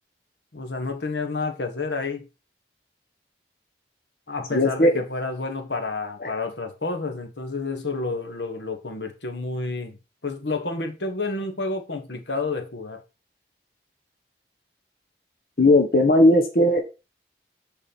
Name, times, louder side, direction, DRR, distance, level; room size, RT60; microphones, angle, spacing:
voice 1, 0.5-2.3 4.3-10.0 10.2-13.0, left 3 dB, 90° left, 1.5 m, -30 dB
voice 2, 4.5-5.0 6.2-6.3 15.6-17.0, left 1 dB, 55° left, 1.1 m, -18 dB
7.1 x 4.9 x 5.3 m
head